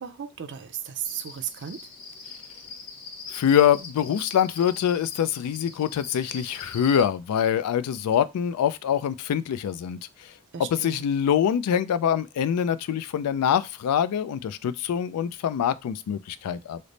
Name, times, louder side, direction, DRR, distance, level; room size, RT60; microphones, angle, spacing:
voice 1, 0.0-1.8 10.5-11.0, right 9 dB, 55° right, 0.5 m, -35 dB
Cricket, 1.0-7.0, left 4 dB, 45° left, 1.0 m, -42 dB
voice 2, 3.3-10.0 10.7-16.8, left 9 dB, 90° left, 0.3 m, -24 dB
3.3 x 2.0 x 3.8 m
head